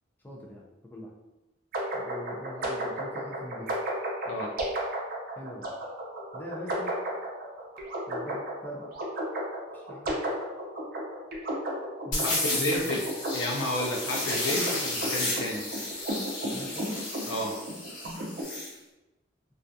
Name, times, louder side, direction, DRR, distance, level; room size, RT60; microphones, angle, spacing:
voice 1, 0.2-1.1 1.9-3.7 5.4-5.7 6.3-6.9 8.1-8.8 9.7-10.2 12.0-12.9 14.8-14.9 16.4-17.0, left 1 dB, 10° left, -3 dB, 0.3 m, -42 dB
sound 1, 1.7-18.4, right 1 dB, 50° right, 0.5 m, -34 dB
sound 2, 12.1-18.7, left 2 dB, 45° left, 0.9 m, -33 dB
voice 2, 12.2-13.1 13.3-14.7 15.0-15.7 17.3-17.6, left 1 dB, 90° left, -1 dB, 0.4 m, -31 dB
2.3 x 2.2 x 2.6 m, 1.0 s
head